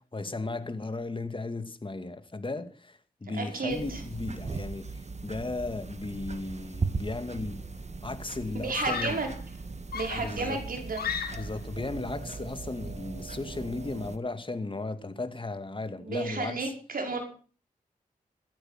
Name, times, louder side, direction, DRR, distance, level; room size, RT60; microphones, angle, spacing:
voice 1, 0.0-7.6 8.0-9.2 10.1-10.6 11.3-16.7, left 2 dB, 35° left, 2.2 m, -36 dB
voice 2, 3.4-4.0 8.5-9.3 9.9-11.1 16.0-17.2, right 3 dB, 70° right, 5.6 m, -32 dB
sound 1, 3.7-14.2, right 4 dB, 45° right, 1.7 m, -38 dB
Screaming, 7.2-7.6 8.7-9.4 9.9-11.7, left 7 dB, 90° left, 2.1 m, -36 dB
15.5 x 13.0 x 6.0 m
cardioid pair, 50°, 15 cm